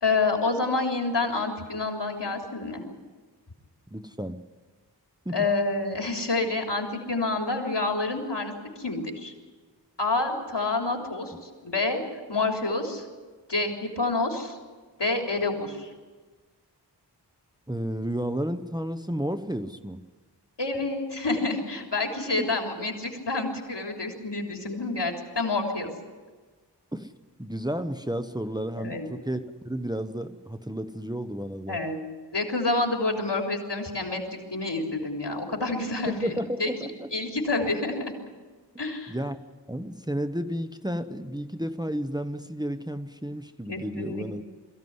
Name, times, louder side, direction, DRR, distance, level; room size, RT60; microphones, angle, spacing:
voice 1, 0.0-2.8 5.3-8.5 8.8-9.3 10.0-13.1 13.5-14.6 15.0-15.9 20.6-25.9 28.8-29.1 31.7-32.0 32.3-36.7 37.1-38.1 38.8-39.2 43.7-44.4, left 3 dB, 75° left, 1 dB, 3.6 m, -28 dB
voice 2, 3.9-4.4 5.2-5.4 17.7-20.0 22.4-22.5 26.9-27.1 27.4-31.8 36.1-37.1 39.1-39.4 39.7-44.4, equal, 10° right, 9 dB, 1.0 m, -32 dB
22.5 x 15.5 x 9.6 m, 1.4 s
wide cardioid pair, 40°, 42 cm